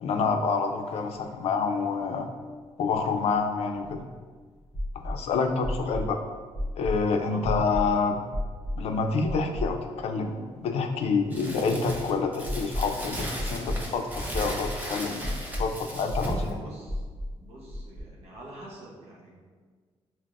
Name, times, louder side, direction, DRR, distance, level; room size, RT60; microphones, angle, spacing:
voice 1, 0.0-2.3 2.8-4.0 4.9-6.2 6.8-8.2 8.8-15.3 15.6-16.4, left 4 dB, 75° left, 5 dB, 0.4 m, -27 dB
sound 1, 0.9-1.0 1.3-1.4 2.9-4.1 4.7-5.2 5.6-6.1 6.5-7.0 7.4-7.9 8.3-8.8 9.3-10.0 10.3-10.4 12.4-13.0 13.4-13.8 14.3-14.8 15.2-15.7 16.1-16.5 16.9-17.3 17.7-18.0, left 1 dB, 25° left, 1.0 m, -32 dB
voice 2, 0.9-1.5 5.8-6.1 7.3-7.5 15.2-15.8 16.1-17.0 17.4-19.4, right 1 dB, 75° right, -4 dB, 0.8 m, -46 dB
Crumpling crinkling, 11.3-16.5, right 1 dB, 15° right, 0.7 m, -36 dB
5.7 x 2.0 x 2.4 m, 1.5 s
cardioid pair, 90°, 11 cm